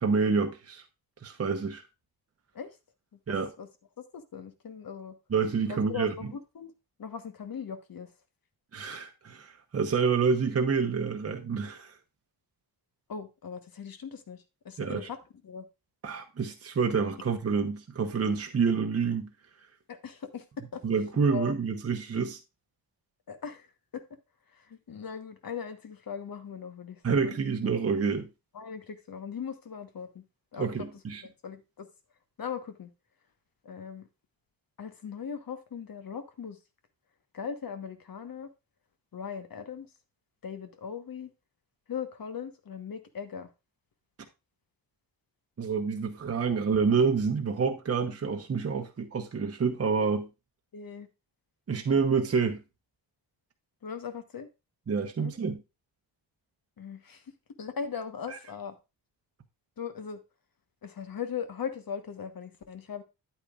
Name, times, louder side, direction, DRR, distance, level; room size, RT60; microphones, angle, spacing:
voice 1, 0.0-0.8 1.2-1.8 3.3-3.5 5.3-6.1 8.7-11.9 14.8-15.1 16.0-19.3 20.8-22.4 27.0-28.3 30.6-31.2 45.6-50.3 51.7-52.6 54.9-55.6, right 5 dB, 35° right, 1.0 m, -28 dB
voice 2, 4.1-5.1 5.7-6.7 7.0-8.1 13.1-14.4 14.6-15.2 15.4-15.6 19.9-20.4 20.7-20.8 21.3-21.5 23.3-23.7 23.9-24.0 24.5-27.4 28.5-30.2 30.5-30.7 31.2-31.9 32.4-32.9 33.6-34.0 34.8-36.6 37.3-38.5 39.1-39.9 40.4-41.3 41.9-43.5 50.7-51.1 53.8-54.5 55.2-55.3 56.8-57.2 57.6-58.7 59.8-60.2 60.8-63.0, left 7 dB, 50° left, 1.3 m, -39 dB
9.3 x 8.6 x 2.4 m
cardioid pair, 85°, 44 cm